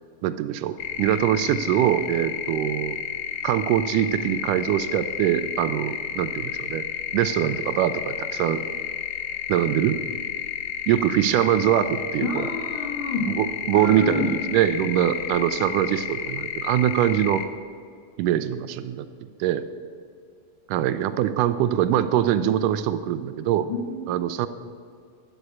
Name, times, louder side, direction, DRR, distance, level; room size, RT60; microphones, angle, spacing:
voice 1, 0.2-3.0 3.4-6.8 7.1-8.6 9.5-10.0 10.9-12.5 13.4-17.4 18.2-19.1 19.4-19.6 20.7-23.7 24.1-24.5, right 11 dB, 80° right, 12 dB, 2.0 m, -23 dB
sound 1, 0.8-17.5, left 10 dB, 90° left, 2.5 m, -32 dB
voice 2, 12.2-13.3 13.7-14.3 23.6-24.2, left 4 dB, 50° left, 0 dB, 2.1 m, -29 dB
11.5 x 9.6 x 8.4 m, 2.2 s
omnidirectional pair, 3.8 m